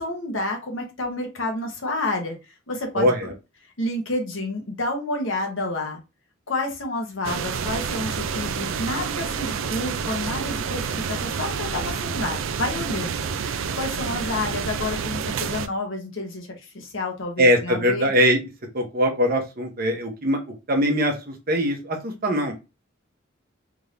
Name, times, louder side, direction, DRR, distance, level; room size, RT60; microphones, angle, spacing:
voice 1, 0.0-2.4 2.7-3.3 3.8-6.0 6.5-10.8 11.1-18.1, left 2 dB, 70° left, 3 dB, 1.2 m, -29 dB
voice 2, 2.9-3.3 17.4-18.4 18.7-20.4 20.7-22.5, equal, 45° right, 3 dB, 1.0 m, -21 dB
sound 1, 7.2-15.7, right 6 dB, 75° right, 0.4 m, -28 dB
3.6 x 2.6 x 3.3 m, 0.27 s
head